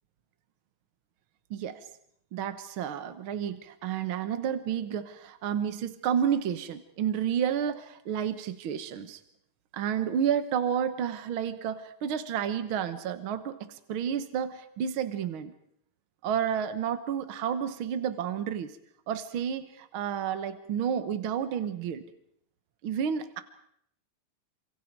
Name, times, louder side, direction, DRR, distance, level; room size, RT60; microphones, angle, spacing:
voice 1, 2.3-9.2 9.7-15.5 16.2-18.7 19.1-22.0 22.8-23.4, right 8 dB, 75° right, 10 dB, 1.2 m, -31 dB
28.0 x 26.5 x 4.7 m, 0.70 s
omnidirectional pair, 4.0 m